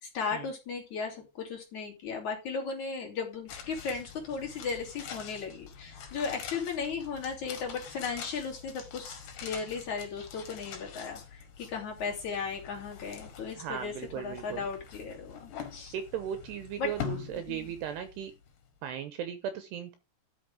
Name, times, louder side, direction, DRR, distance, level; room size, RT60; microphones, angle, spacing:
voice 1, 0.0-16.0 16.8-16.9 17.4-17.7, left 5 dB, 45° left, 0 dB, 3.9 m, -36 dB
sound 1, 3.5-18.7 18.9-19.0, left 8 dB, 70° left, 4.2 m, -45 dB
voice 2, 13.6-14.6 15.9-18.3 18.8-20.0, right 9 dB, 75° right, 10 dB, 2.9 m, -37 dB
11.5 x 6.4 x 5.0 m, 0.27 s
omnidirectional pair, 5.1 m